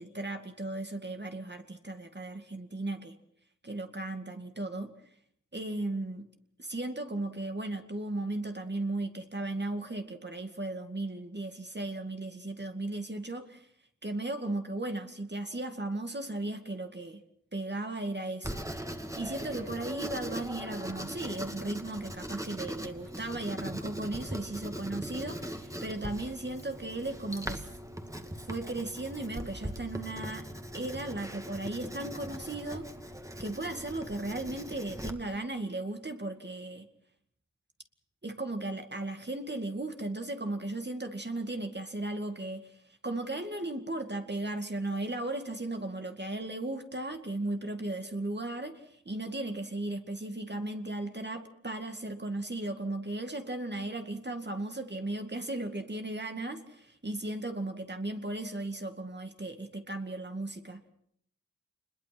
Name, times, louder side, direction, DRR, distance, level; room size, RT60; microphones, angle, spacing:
voice 1, 0.0-3.2 3.6-5.0 5.5-6.3 6.6-13.7 14.0-17.2 17.5-18.6 19.2-27.7 28.4-30.5 30.7-32.9 33.4-36.9 38.2-60.8, right 2 dB, 35° right, 2.2 m, -36 dB
Writing, 18.4-35.1, equal, 10° right, 2.5 m, -40 dB
28.0 x 21.5 x 6.1 m
wide cardioid pair, 60°, 30 cm